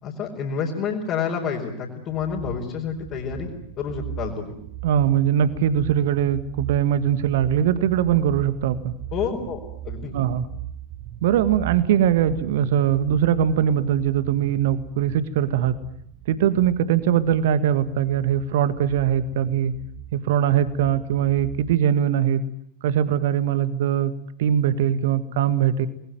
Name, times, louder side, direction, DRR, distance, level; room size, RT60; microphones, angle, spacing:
voice 1, 0.0-3.5 3.8-4.6 9.1-9.6 9.8-10.2, left 6 dB, 35° left, -2 dB, 4.8 m, -28 dB
sound 1, 2.1-21.8, right 12 dB, 35° right, 1.3 m, -39 dB
voice 2, 4.8-8.9 10.1-10.5 11.2-15.7 16.3-19.7 20.1-22.4 22.8-24.1 24.4-25.9, right 9 dB, 55° right, 14 dB, 1.8 m, -21 dB
28.5 x 21.0 x 9.2 m, 0.70 s
figure-of-eight pair, 90°, 0 cm